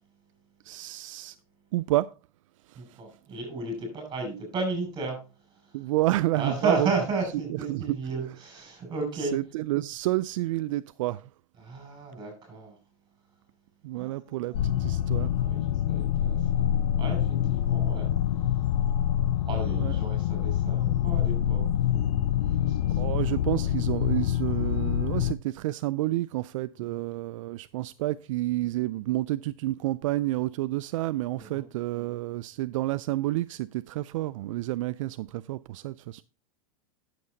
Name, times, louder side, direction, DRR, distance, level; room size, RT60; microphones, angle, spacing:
voice 1, 0.6-1.4 1.7-2.1 2.7-3.0 5.7-6.9 7.7-8.0 9.2-11.3 13.8-15.3 19.7-20.0 23.0-36.2, right 17 dB, 70° right, 0.4 m, -29 dB
voice 2, 2.8-5.2 5.5-5.9 6.3-9.4 11.6-12.8 14.0-16.6 17.0-18.1 19.3-21.6 21.9-23.7 26.7-27.0 31.3-31.6, right 3 dB, 25° right, 6.0 m, -34 dB
sound 1, 14.5-25.3, left 10 dB, 75° left, 0.5 m, -26 dB
9.5 x 7.7 x 3.9 m
supercardioid pair, 125°, 18 cm